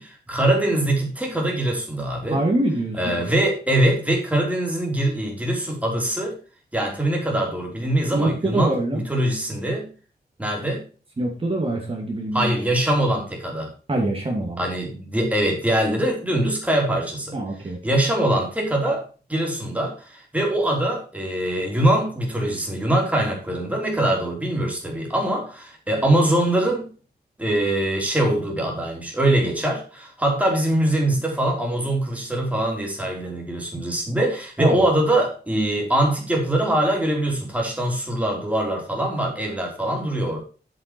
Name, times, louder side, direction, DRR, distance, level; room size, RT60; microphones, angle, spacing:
voice 1, 0.0-2.4 3.0-6.4 6.7-9.9 10.4-10.8 12.3-13.7 14.6-17.4 17.8-19.0 19.3-26.9 27.4-40.4, right 1 dB, 10° right, -1 dB, 3.5 m, -23 dB
voice 2, 2.3-3.2 8.1-9.0 11.2-12.5 13.9-14.6 17.3-17.8 34.6-34.8, right 2 dB, 35° right, 0 dB, 2.3 m, -24 dB
8.0 x 7.4 x 4.5 m, 0.36 s
wide cardioid pair, 125°, 17 cm